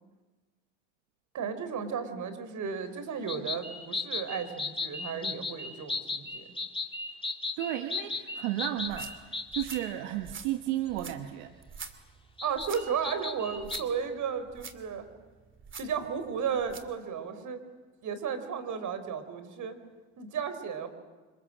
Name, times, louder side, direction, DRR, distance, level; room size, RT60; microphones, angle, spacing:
voice 1, 1.3-6.5 12.4-15.0 15.8-17.6 18.0-19.8 20.2-20.9, right 6 dB, 50° right, 10 dB, 4.2 m, -34 dB
sound 1, 3.3-9.9 12.4-13.8, left 3 dB, 15° left, 2.6 m, -36 dB
voice 2, 7.6-11.5, right 13 dB, 80° right, 7 dB, 1.5 m, -33 dB
sound 2, 8.8-17.0, right 5 dB, 30° right, 2.8 m, -47 dB
26.5 x 26.0 x 7.7 m, 1.3 s
supercardioid pair, 80°, 38 cm